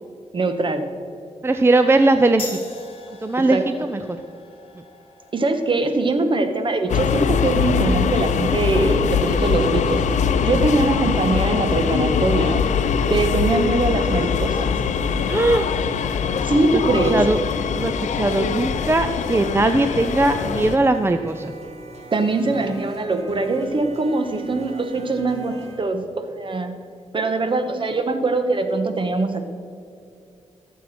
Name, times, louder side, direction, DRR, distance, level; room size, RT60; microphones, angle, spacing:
voice 1, 0.3-0.8 3.4-3.6 5.3-12.6 13.1-14.7 16.4-17.2 22.1-26.7 27.1-29.4, right 3 dB, 45° right, 7 dB, 1.3 m, -22 dB
voice 2, 1.4-2.6 3.2-4.0 15.3-15.7 16.7-16.8 17.1-17.4 17.8-21.5, right 2 dB, 20° right, 9 dB, 0.5 m, -19 dB
sound 1, 2.4-9.5, left 3 dB, 50° left, 1.9 m, -42 dB
sound 2, 6.9-20.8, left 6 dB, 85° left, 0.6 m, -22 dB
sound 3, 18.3-25.8, right 2 dB, 65° right, 2.4 m, -41 dB
16.5 x 7.2 x 4.3 m, 2.5 s
cardioid pair, 75°, 12 cm